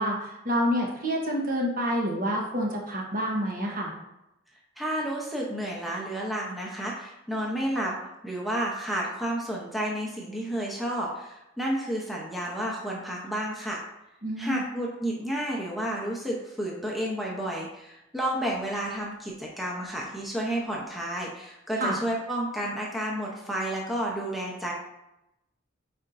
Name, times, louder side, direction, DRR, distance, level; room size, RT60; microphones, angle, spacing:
voice 1, 0.0-3.9 14.2-14.6 21.8-22.0, equal, 45° right, -1 dB, 1.2 m, -28 dB
voice 2, 4.8-8.0 8.2-13.8 14.4-24.7, right 1 dB, ahead, -4 dB, 0.8 m, -31 dB
8.7 x 4.3 x 2.6 m, 0.89 s
head